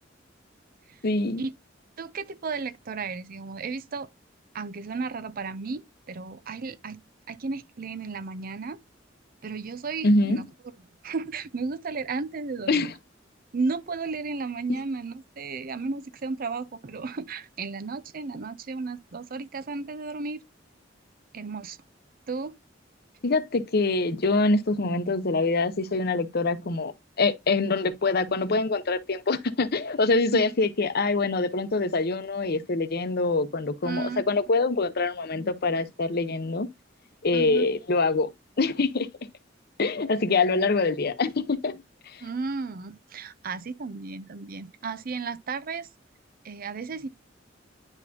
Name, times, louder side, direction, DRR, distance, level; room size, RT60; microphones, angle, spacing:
voice 1, 1.0-1.4 10.0-10.4 12.7-12.9 23.2-36.7 37.2-38.3 38.6-39.1 39.8-42.2, left 3 dB, 55° left, 0.8 m, -25 dB
voice 2, 2.0-4.1 4.5-7.0 7.3-8.8 9.4-10.4 11.0-12.9 13.5-20.4 21.3-21.8 22.3-22.6 30.3-30.5 33.8-34.2 37.3-37.7 42.2-45.9 46.4-47.1, right 4 dB, 50° right, 0.6 m, -33 dB
9.7 x 4.3 x 2.7 m
head